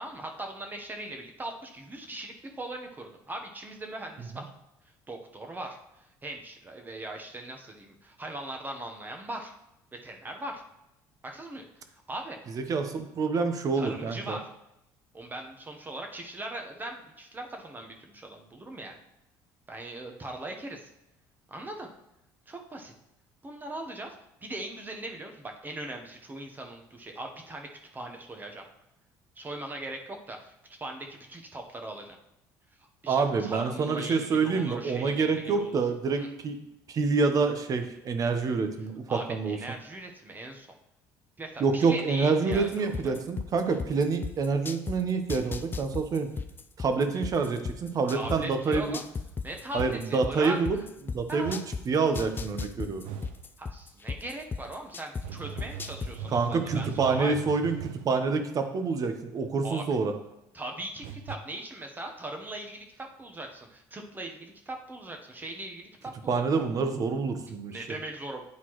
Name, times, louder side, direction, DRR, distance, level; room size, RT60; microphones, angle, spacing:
voice 1, 0.0-4.4 5.1-9.5 10.0-10.6 11.2-11.6 12.1-12.4 13.7-14.5 15.1-19.0 19.7-20.9 21.5-21.9 22.5-22.9 23.4-24.1 24.4-27.7 27.9-28.6 29.4-30.5 30.8-32.2 32.8-35.8 36.2-36.3 39.1-40.7 41.4-43.1 48.1-49.0 49.4-50.6 51.3-51.6 53.6-57.3 59.6-60.0 60.5-66.4 67.7-68.4, right 1 dB, 20° right, 3 dB, 1.0 m, -40 dB
voice 2, 12.5-14.4 33.1-36.6 36.9-39.6 41.6-46.3 46.8-49.0 49.7-50.8 51.1-51.6 51.9-53.0 56.3-57.8 58.0-60.1 66.3-67.7, right 4 dB, 45° right, 7 dB, 0.9 m, -27 dB
sound 1, 42.5-45.0 45.3-48.4 48.7-51.8 52.1-55.2 55.6-56.1, left 5 dB, 25° left, 0.4 m, -34 dB
sound 2, 48.2-48.7 49.8-50.2 51.4-51.8 53.0-53.4 55.2-58.2 61.0-61.4, right 8 dB, 90° right, 0.4 m, -40 dB
9.6 x 4.1 x 3.1 m, 0.86 s
supercardioid pair, 90°, 8 cm